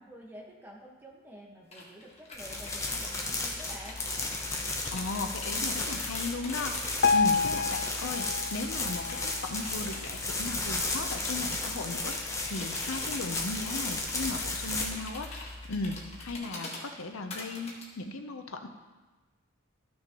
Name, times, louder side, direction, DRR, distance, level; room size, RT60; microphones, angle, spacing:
voice 1, 0.0-4.1, equal, 10° right, -2 dB, 1.3 m, -49 dB
sound 1, 1.7-17.8, left 2 dB, 30° left, 1.4 m, -45 dB
sound 2, 2.3-16.3, left 2 dB, 15° left, 0.8 m, -34 dB
voice 2, 4.6-18.7, left 2 dB, 85° left, 6 dB, 0.7 m, -37 dB
Piano, 7.0-10.1 10.6-10.8 11.1-11.2 11.9-12.0 12.6-12.7, left 5 dB, 55° left, 0.4 m, -29 dB
14.0 x 6.4 x 3.0 m, 1.2 s
head